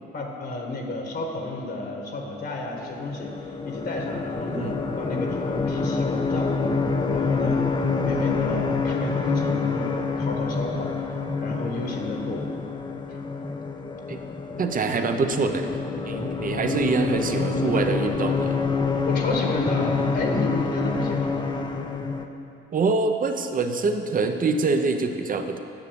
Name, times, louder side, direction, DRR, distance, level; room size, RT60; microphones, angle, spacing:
voice 1, 0.1-3.3 3.6-6.8 7.1-7.7 8.0-11.1 11.4-12.5 19.1-21.5, left 2 dB, 55° left, 1 dB, 1.5 m, -31 dB
sound 1, 2.8-22.3, left 4 dB, 25° left, 0.7 m, -27 dB
voice 2, 14.6-15.7 16.0-18.6 22.7-25.6, right 4 dB, 45° right, 6 dB, 0.9 m, -25 dB
9.7 x 6.7 x 6.9 m, 2.8 s
cardioid pair, 90°, 20 cm